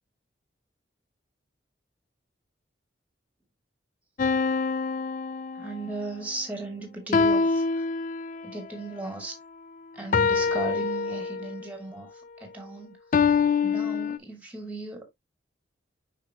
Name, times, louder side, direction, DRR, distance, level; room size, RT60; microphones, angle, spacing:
sound 1, 4.2-6.0 7.1-8.6 10.1-11.7 13.1-14.2, left 5 dB, 45° left, 0.3 m, -25 dB
voice 1, 5.5-7.8 8.4-9.3 9.9-12.1 12.4-13.0 13.6-15.1, right 2 dB, 10° right, 2.5 m, -36 dB
5.9 x 5.8 x 2.9 m
head